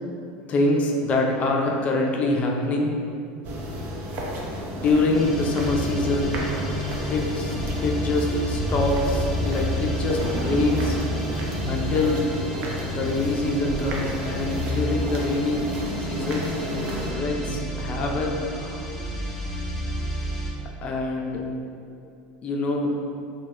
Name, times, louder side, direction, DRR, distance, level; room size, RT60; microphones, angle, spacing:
voice 1, 0.5-2.9 4.7-6.4 7.1-7.6 7.8-11.0 11.7-12.3 12.9-15.7 16.0-16.8 17.1-18.4 20.8-21.4 22.4-23.0, left 2 dB, 35° left, 0 dB, 0.3 m, -25 dB
sound 1, 3.4-17.1, equal, 50° right, 0.4 m, -31 dB
sound 2, 5.1-20.6, left 1 dB, ahead, 0.7 m, -31 dB
sound 3, 13.2-19.3, right 1 dB, 70° right, 0.9 m, -48 dB
2.2 x 2.0 x 3.5 m, 2.5 s
supercardioid pair, 110°, 4 cm